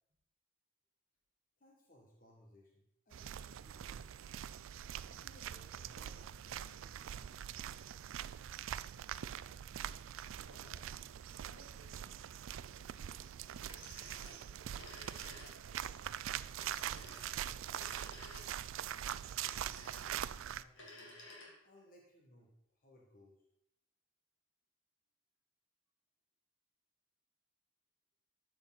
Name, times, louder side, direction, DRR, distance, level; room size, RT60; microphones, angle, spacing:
voice 1, 1.6-4.4 5.0-7.5 19.9-21.2 21.6-23.4, left 1 dB, 45° left, -2 dB, 1.5 m, -64 dB
sound 1, 3.1-20.6, right 10 dB, 85° right, 0.3 m, -43 dB
voice 2, 10.4-11.1 11.4-12.2 12.6-13.5 13.9-18.5, left 1 dB, 90° left, -4 dB, 4.1 m, -65 dB
Telephone, 13.6-15.8 16.6-18.8 19.4-20.2 20.7-21.8, left 1 dB, 75° left, 2.6 m, -54 dB
12.5 x 6.8 x 4.0 m, 0.79 s
head